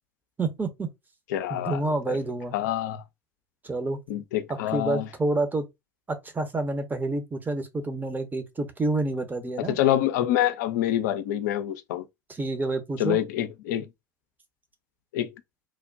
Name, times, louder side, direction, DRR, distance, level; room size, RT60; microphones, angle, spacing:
voice 1, 0.4-0.9 1.5-2.5 3.6-4.0 4.7-5.6 6.1-9.8 12.4-13.2, right 2 dB, 20° right, 0.8 m, -28 dB
voice 2, 1.3-2.2 2.5-3.0 4.1-5.1 9.7-12.1 13.0-13.9 15.1-15.3, left 12 dB, 70° left, 0.4 m, -26 dB
3.1 x 2.1 x 2.5 m
hypercardioid pair, 70°, 10 cm